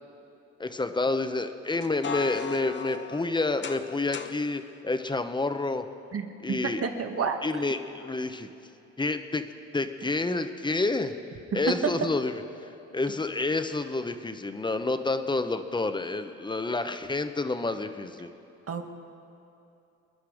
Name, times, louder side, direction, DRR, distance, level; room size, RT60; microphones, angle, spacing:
voice 1, 0.6-5.9 6.4-6.8 7.4-8.5 9.0-9.4 9.7-11.2 11.5-12.4 12.9-18.3, left 3 dB, 15° left, 8 dB, 1.0 m, -29 dB
sound 1, 1.7-4.4, left 5 dB, 40° left, 1.0 m, -37 dB
voice 2, 6.1-7.4 18.7-18.8, right 6 dB, 50° right, 4 dB, 1.7 m, -30 dB
27.0 x 10.5 x 5.0 m, 2.8 s
cardioid pair, 90°, 30 cm